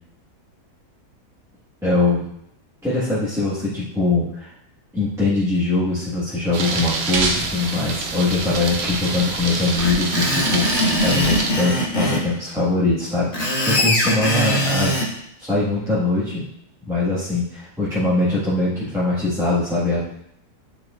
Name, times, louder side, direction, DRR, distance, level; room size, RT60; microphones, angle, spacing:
voice 1, 1.8-2.2 2.8-4.5 4.9-10.7 11.0-15.0 15.4-16.4 16.8-20.0, left 2 dB, ahead, -11 dB, 1.3 m, -22 dB
sound 1, 6.5-11.5, right 3 dB, 55° right, 0.8 m, -26 dB
Screech, 9.8-12.2 13.1-15.1, equal, 45° left, 1.3 m, -21 dB
9.3 x 4.6 x 2.4 m, 0.74 s
omnidirectional pair, 1.7 m